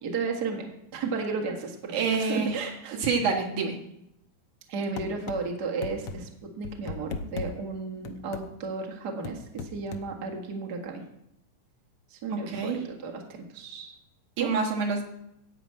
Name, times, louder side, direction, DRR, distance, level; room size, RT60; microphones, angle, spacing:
voice 1, 0.0-3.0 4.7-11.0 12.1-13.9 14.4-14.5, right 4 dB, 40° right, 0 dB, 1.6 m, -34 dB
voice 2, 1.9-2.6 3.0-3.8 12.3-12.8 14.4-15.0, right 4 dB, 70° right, 0 dB, 2.8 m, -27 dB
sound 1, 5.0-5.4 5.8-6.2 6.6-7.5 8.1-8.5 9.2-10.1, left 4 dB, 85° left, 1.3 m, -35 dB
12.5 x 5.1 x 8.6 m, 0.79 s
omnidirectional pair, 3.8 m